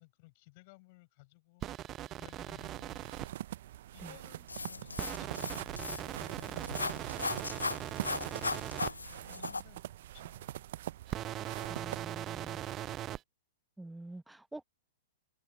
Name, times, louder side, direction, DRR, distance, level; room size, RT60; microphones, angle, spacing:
voice 1, 0.0-1.7 2.2-3.2 3.9-7.1 7.7-8.9 9.2-10.6 11.1-11.8 12.1-12.9, left 25 dB, 45° left, 7.3 m, -60 dB
sound 1, 1.6-3.3 5.0-8.9 11.1-13.2, right 13 dB, 30° right, 0.4 m, -40 dB
sound 2, 2.6-12.1, right 13 dB, 50° right, 0.8 m, -44 dB
sound 3, 4.5-9.6, left 3 dB, 80° left, 0.6 m, -38 dB
voice 2, 11.7-12.6 13.8-14.6, right 2 dB, 5° right, 1.3 m, -47 dB
figure-of-eight pair, 105°, 0 cm